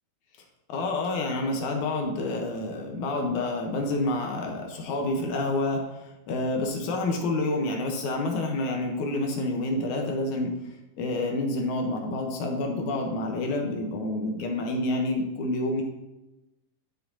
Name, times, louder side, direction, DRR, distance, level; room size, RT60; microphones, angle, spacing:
voice 1, 0.7-10.6 11.0-15.8, left 2 dB, 70° left, 2 dB, 2.4 m, -28 dB
11.5 x 5.8 x 2.8 m, 0.99 s
omnidirectional pair, 3.7 m